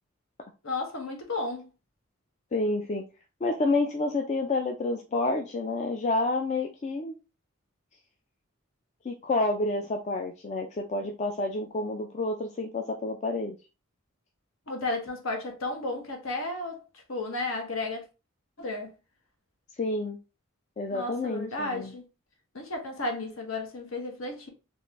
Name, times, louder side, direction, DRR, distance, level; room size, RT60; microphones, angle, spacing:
voice 1, 0.6-1.7 14.7-18.0 18.6-18.9 20.9-22.0 22.5-24.5, left 2 dB, 70° left, 0.9 m, -33 dB
voice 2, 2.5-3.0 3.4-7.1 9.0-13.6 19.8-20.2 20.8-21.9, left 2 dB, 35° left, 0.3 m, -29 dB
3.6 x 2.5 x 3.0 m
head